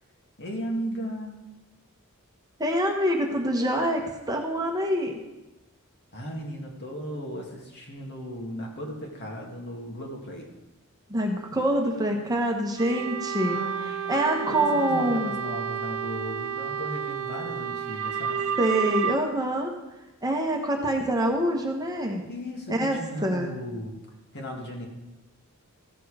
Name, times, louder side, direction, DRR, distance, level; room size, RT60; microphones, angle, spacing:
voice 1, 0.4-1.4 6.1-10.5 13.4-13.9 14.3-18.4 22.3-23.9 24.3-24.9, equal, 50° left, 0 dB, 2.1 m, -36 dB
voice 2, 2.6-5.1 11.1-15.4 18.6-19.7 20.2-22.2 22.7-23.5, right 1 dB, 15° right, 1 dB, 1.1 m, -26 dB
sound 1, 12.8-19.2, right 7 dB, 65° right, 0.6 m, -31 dB
14.5 x 6.9 x 4.9 m, 1.0 s
head